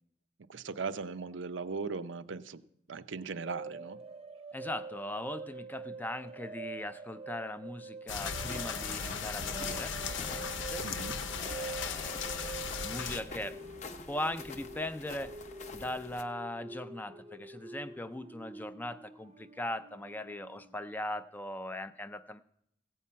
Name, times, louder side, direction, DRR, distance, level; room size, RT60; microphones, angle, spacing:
voice 1, 0.5-2.6 2.9-4.0 10.8-11.2, right 4 dB, 70° right, 11 dB, 0.6 m, -38 dB
sound 1, 3.4-20.9, right 3 dB, 30° right, 0.7 m, -46 dB
voice 2, 4.5-13.6 14.1-15.3 15.7-22.4, left 1 dB, 10° left, 11 dB, 0.4 m, -40 dB
sound 2, 8.1-13.2, left 6 dB, 80° left, 0.8 m, -37 dB
sound 3, 8.5-16.2, left 3 dB, 40° left, 0.7 m, -47 dB
15.5 x 5.5 x 8.5 m, 0.76 s
head